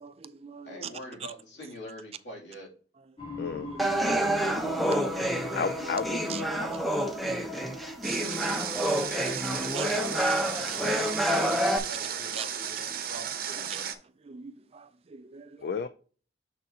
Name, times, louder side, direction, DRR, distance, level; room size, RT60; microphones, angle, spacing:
voice 1, 0.0-0.9 3.6-4.2 4.6-5.6 6.3-7.8 9.8-9.9 12.3-12.4 13.7-13.8 14.3-15.5, right 6 dB, 35° right, 0.4 m, -43 dB
voice 2, 0.6-2.7 8.1-13.9, equal, 80° left, 2.6 m, -43 dB
sound 1, 3.2-12.7, left 4 dB, 30° left, 2.0 m, -45 dB
voice 3, 3.4-3.7 5.5-6.5 15.6-15.9, left 6 dB, 60° left, 0.4 m, -32 dB
sound 2, 3.8-11.8, right 1 dB, ahead, 0.7 m, -28 dB
Water, 8.0-13.9, right 8 dB, 55° right, 0.8 m, -35 dB
6.9 x 6.6 x 2.8 m
head